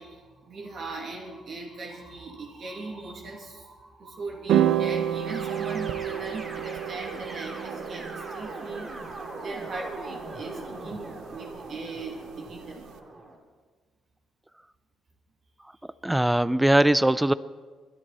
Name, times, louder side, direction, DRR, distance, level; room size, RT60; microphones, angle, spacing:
voice 1, 0.0-9.1 9.4-12.9, right 3 dB, 55° right, 1 dB, 2.7 m, -39 dB
sound 1, 4.5-12.9, right 10 dB, 85° right, 0.9 m, -31 dB
sound 2, 5.3-13.4, right 2 dB, 35° right, 2.5 m, -40 dB
voice 2, 16.0-17.3, right 1 dB, 10° right, 17 dB, 0.5 m, -20 dB
21.5 x 10.5 x 4.3 m, 1.4 s
cardioid pair, 90°, 0 cm